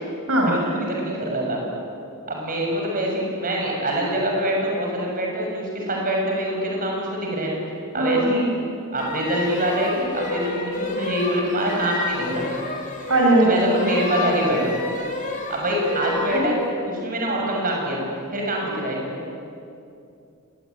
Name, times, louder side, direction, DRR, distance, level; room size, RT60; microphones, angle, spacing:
voice 1, 0.4-1.6 2.3-7.5 7.9-8.4 8.9-12.5 13.4-14.8 15.5-16.5 16.8-18.0 18.3-19.1, right 1 dB, 40° right, -1 dB, 6.8 m, -25 dB
voice 2, 8.0-8.5 13.1-13.5 16.3-16.5, right 1 dB, 75° right, -1 dB, 6.2 m, -19 dB
sound 1, 9.0-16.5, left 3 dB, 40° left, 4.8 m, -30 dB
26.5 x 21.0 x 9.9 m, 2.6 s
head